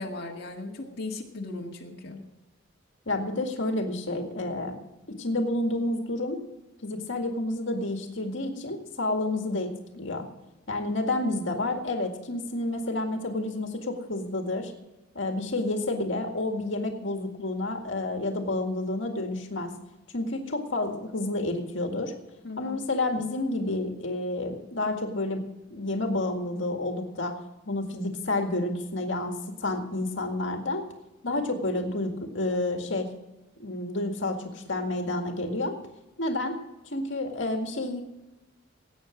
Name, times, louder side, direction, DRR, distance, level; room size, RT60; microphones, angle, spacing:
voice 1, 0.0-2.2 22.4-22.7, left 2 dB, 55° left, -2 dB, 1.9 m, -37 dB
voice 2, 3.1-4.8 5.2-6.4 6.8-10.3 10.7-14.7 15.1-19.7 20.1-22.1 22.6-25.4 25.7-27.4 27.7-30.9 31.2-33.1 33.6-35.8 36.2-36.6 36.9-38.0, left 2 dB, 70° left, 4 dB, 2.0 m, -30 dB
18.0 x 9.0 x 5.1 m, 1.0 s
head